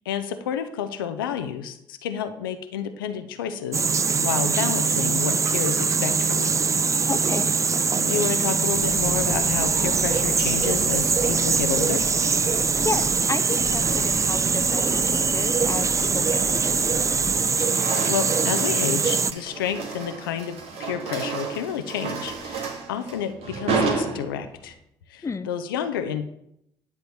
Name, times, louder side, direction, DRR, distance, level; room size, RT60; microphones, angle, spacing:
voice 1, 0.1-6.6 8.0-12.1 17.6-24.7 25.1-26.2, left 8 dB, 80° left, 8 dB, 0.7 m, -30 dB
sound 1, 3.7-19.3, right 5 dB, 25° right, 0.5 m, -22 dB
voice 2, 7.0-7.5 12.5-16.8 25.2-25.5, left 4 dB, 25° left, 11 dB, 0.7 m, -32 dB
Animal, 8.7-13.3 13.6-17.5, left 1 dB, 5° left, 1.8 m, -36 dB
sound 2, 11.6-11.8 12.9-14.5 14.9-15.2 15.7-17.1 17.4-24.7, right 4 dB, 60° right, 1.8 m, -32 dB
10.5 x 4.6 x 7.0 m, 0.74 s
figure-of-eight pair, 45°, 11 cm